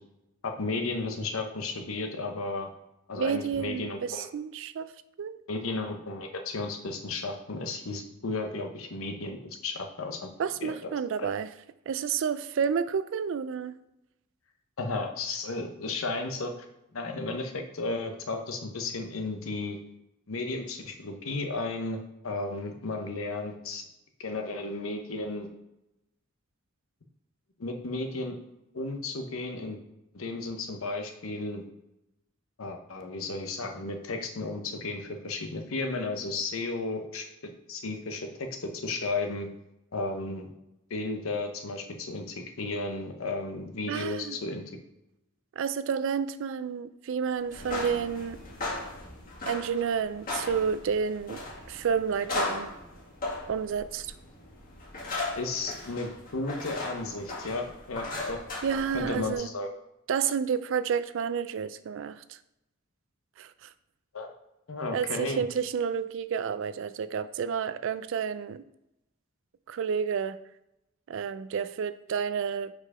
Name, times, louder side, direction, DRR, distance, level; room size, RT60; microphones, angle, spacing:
voice 1, 0.4-2.7 3.1-4.3 5.5-10.3 10.6-10.9 11.2-11.3 14.8-16.5 16.9-19.8 20.3-23.9 24.2-25.5 27.6-28.4 28.7-29.8 30.1-31.6 32.6-39.5 39.9-40.5 40.9-44.6 55.4-58.4 58.9-59.7 64.1-64.3 64.7-65.4, left 3 dB, 80° left, 0.9 m, -34 dB
voice 2, 3.2-4.9 5.2-5.4 10.4-11.5 11.9-13.7 43.9-44.4 45.6-48.4 49.5-51.4 51.7-52.7 53.5-54.1 58.6-59.5 60.1-62.4 63.4-63.7 64.9-68.6 69.7-70.4 71.1-72.7, right 7 dB, 65° right, 0.3 m, -30 dB
sound 1, 47.4-59.3, left 2 dB, 40° left, 2.1 m, -37 dB
4.9 x 4.7 x 4.8 m
head